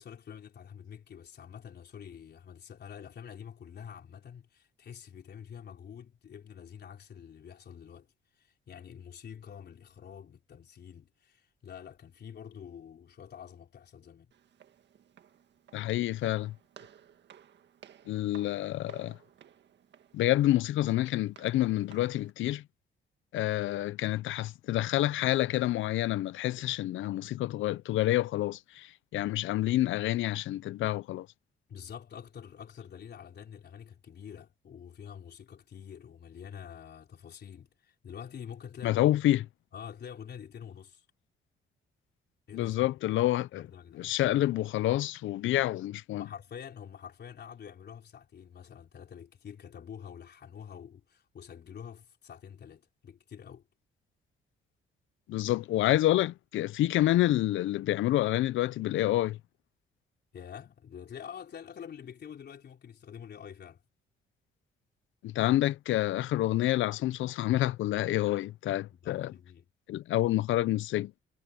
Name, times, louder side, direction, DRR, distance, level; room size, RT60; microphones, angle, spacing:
voice 1, 0.0-14.3 31.7-39.0 39.4-39.5 39.7-41.1 42.5-42.9 43.2-44.2 46.2-53.7 60.3-63.8 68.9-69.7, left 8 dB, 55° left, 4.0 m, -47 dB
Walk footsteps, 14.3-22.3, right 9 dB, 60° right, 1.8 m, -57 dB
voice 2, 15.7-16.5 18.1-19.2 20.1-22.6 23.3-31.3 38.8-39.5 42.5-43.7 44.0-46.3 55.3-59.4 65.2-69.3 69.9-71.1, left 15 dB, 75° left, 0.6 m, -28 dB
cardioid pair, 90°, 20 cm